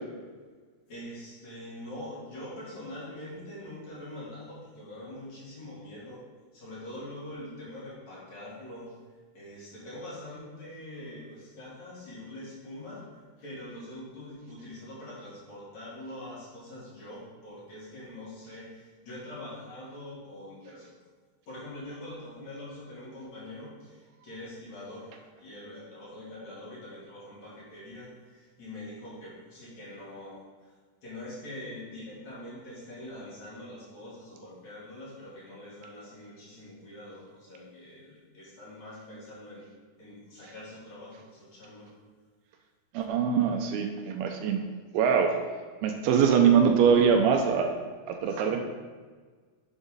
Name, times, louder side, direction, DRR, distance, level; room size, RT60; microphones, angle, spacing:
voice 1, 0.9-6.2 6.5-9.0 9.3-13.0 13.4-20.9 21.5-30.7 31.0-39.6 40.0-41.9 48.2-48.6, left 1 dB, 45° left, -8 dB, 4.3 m, -44 dB
voice 2, 42.9-44.6 44.9-45.4 45.8-47.8 48.1-48.6, right 7 dB, 80° right, 4 dB, 2.5 m, -23 dB
11.0 x 7.2 x 4.0 m, 1.5 s
omnidirectional pair, 4.7 m